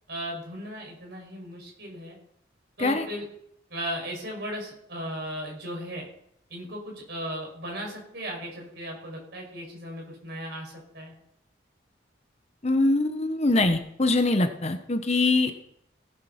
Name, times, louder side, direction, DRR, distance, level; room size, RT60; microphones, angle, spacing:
voice 1, 0.1-2.2 2.8-3.3 3.7-6.1 6.5-11.1, equal, 60° right, 0 dB, 5.6 m, -36 dB
voice 2, 12.6-15.5, left 2 dB, 35° left, 7 dB, 1.0 m, -23 dB
17.0 x 6.8 x 5.8 m, 0.73 s
head